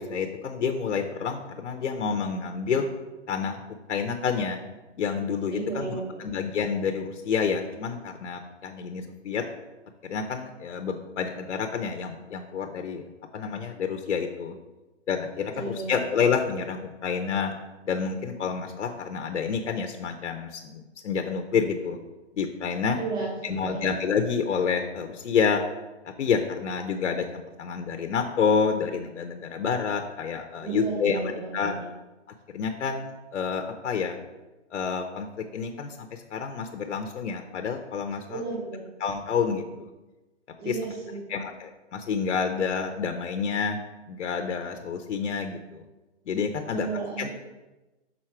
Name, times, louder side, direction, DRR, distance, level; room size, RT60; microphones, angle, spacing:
voice 1, 0.0-2.9 3.3-3.6 3.9-4.6 5.0-9.4 10.0-13.1 13.3-14.6 15.1-17.5 17.9-22.0 22.3-23.0 23.4-25.6 26.2-31.2 31.5-31.7 32.5-34.2 34.7-38.4 39.0-39.9 40.6-40.9 41.3-43.8 44.1-45.8 46.3-46.9 47.2-47.3, left 6 dB, 85° left, 4 dB, 0.7 m, -28 dB
voice 2, 5.5-6.3 15.5-16.0 22.9-23.9 30.6-31.8 38.3-38.9 40.6-41.4 46.7-47.3, right 4 dB, 40° right, -7 dB, 2.3 m, -34 dB
6.2 x 4.0 x 4.4 m, 1.1 s
hypercardioid pair, 175°, 35 cm